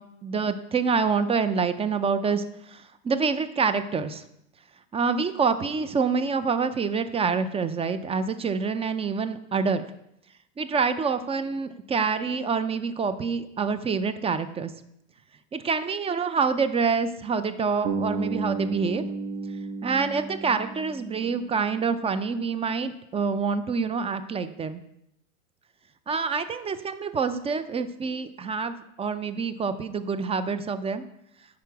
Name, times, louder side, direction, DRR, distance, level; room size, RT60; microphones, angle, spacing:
voice 1, 0.0-4.2 4.9-9.8 10.6-14.7 15.5-19.0 19.8-24.8 26.1-31.0, right 5 dB, 15° right, 11 dB, 0.4 m, -27 dB
Bass guitar, 17.8-21.9, right 3 dB, 80° right, 1.3 m, -33 dB
10.0 x 4.8 x 4.7 m, 0.79 s
hypercardioid pair, 100°, 41 cm